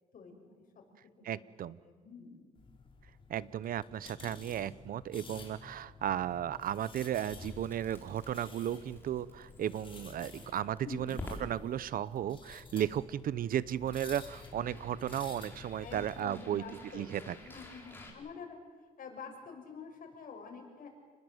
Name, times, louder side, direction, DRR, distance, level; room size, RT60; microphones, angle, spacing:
voice 1, 0.1-0.6 1.2-2.6 10.8-11.2 15.8-18.6 19.0-20.9, left 5 dB, 65° left, 3 dB, 6.1 m, -48 dB
voice 2, 1.2-1.8 3.3-16.6 16.9-17.3, right 10 dB, 75° right, 19 dB, 0.8 m, -35 dB
sound 1, 2.6-16.2, left 4 dB, 35° left, 4.6 m, -52 dB
Crackle, 7.3-18.1, left 2 dB, 15° left, 5.0 m, -51 dB
29.0 x 20.5 x 8.0 m, 1.5 s
cardioid pair, 120°, 15 cm